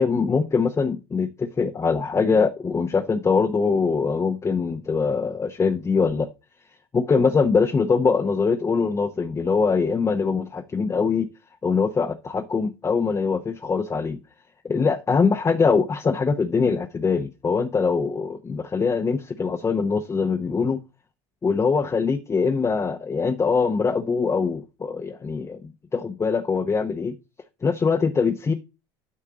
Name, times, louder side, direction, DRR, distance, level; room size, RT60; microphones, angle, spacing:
voice 1, 0.0-6.3 6.9-11.3 11.6-14.2 14.6-20.8 21.4-27.2 27.6-28.5, left 5 dB, 20° left, 0.8 m, -23 dB
8.5 x 4.4 x 5.0 m
hypercardioid pair, 80°, 13 cm